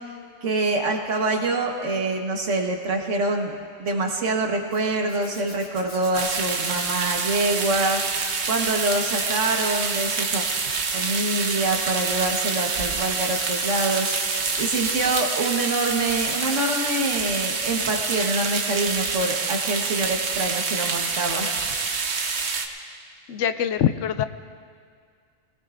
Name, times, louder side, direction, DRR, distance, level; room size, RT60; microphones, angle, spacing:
voice 1, 0.4-3.5 3.8-10.4 10.9-21.6, right 2 dB, 80° right, 2 dB, 1.7 m, -25 dB
Zipper (clothing), 4.7-12.1 13.1-16.7 17.1-17.4 19.8-19.9 20.2-20.3, left 1 dB, 35° left, 2.5 m, -41 dB
sound 1, 6.1-22.7, right 4 dB, 65° right, 1.2 m, -27 dB
voice 2, 23.3-24.3, left 9 dB, 80° left, 11 dB, 0.9 m, -23 dB
22.0 x 19.0 x 2.6 m, 2.1 s
omnidirectional pair, 1.2 m